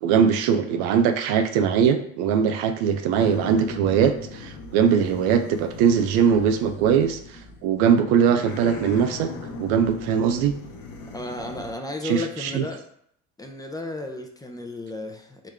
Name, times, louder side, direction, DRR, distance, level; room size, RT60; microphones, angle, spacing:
voice 1, 0.0-9.3 9.6-10.5 12.0-12.6, right 7 dB, 60° right, 8 dB, 0.5 m, -21 dB
sound 1, 3.1-7.8 8.2-11.7, left 3 dB, 45° left, 1.0 m, -39 dB
voice 2, 11.1-12.8 13.4-15.5, left 2 dB, 10° left, 3 dB, 0.7 m, -33 dB
3.8 x 3.0 x 3.5 m, 0.69 s
hypercardioid pair, 60°, 42 cm